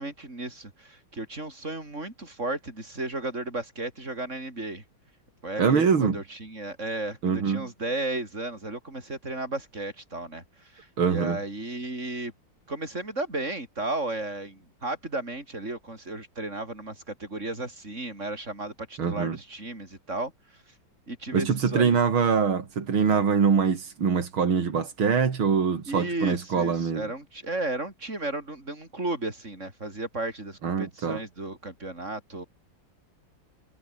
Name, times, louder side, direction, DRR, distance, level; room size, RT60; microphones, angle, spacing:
voice 1, 0.0-4.8 5.4-12.3 12.7-20.7 21.1-22.0 25.9-32.4, right 2 dB, 35° right, 6.7 m, -34 dB
voice 2, 5.6-6.2 7.2-7.7 11.0-11.4 19.0-19.4 21.3-27.1 30.6-31.2, right 6 dB, 90° right, 3.4 m, -24 dB
omnidirectional pair, 2.2 m